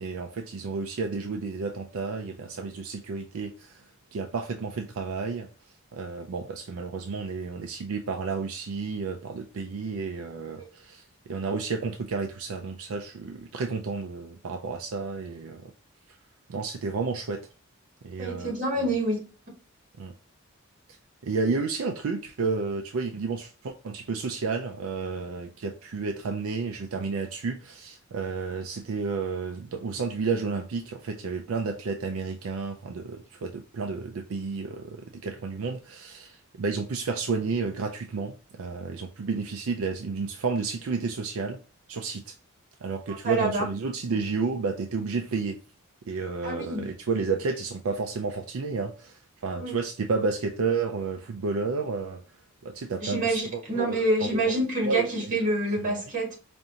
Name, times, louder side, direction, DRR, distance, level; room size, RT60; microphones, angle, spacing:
voice 1, 0.0-3.8 4.1-5.5 5.9-15.7 16.5-17.5 18.0-18.9 20.0-20.1 21.2-41.6 41.9-42.3 42.8-45.6 46.1-52.2 52.6-54.5 54.8-55.3 55.8-56.0, right 4 dB, 75° right, 0.4 m, -31 dB
voice 2, 18.2-19.3 43.1-43.7 46.4-46.9 49.5-49.7 53.0-56.4, right 2 dB, 40° right, 1.8 m, -27 dB
4.9 x 2.6 x 2.7 m
head